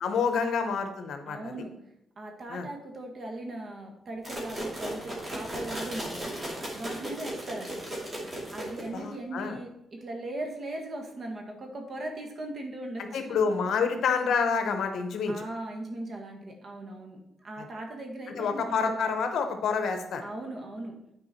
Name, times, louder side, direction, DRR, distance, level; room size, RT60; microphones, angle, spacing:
voice 1, 0.0-1.5 2.5-2.7 8.9-9.6 13.0-15.3 18.3-20.2, left 5 dB, 70° left, 6 dB, 0.9 m, -28 dB
voice 2, 1.3-1.7 2.2-6.4 6.7-7.8 8.5-13.2 15.3-18.9 20.2-20.9, right 1 dB, 45° right, 2 dB, 1.5 m, -39 dB
sound 1, 4.2-9.1, right 1 dB, 25° right, 2.4 m, -36 dB
9.5 x 4.6 x 4.3 m, 0.82 s
cardioid pair, 110°, 0 cm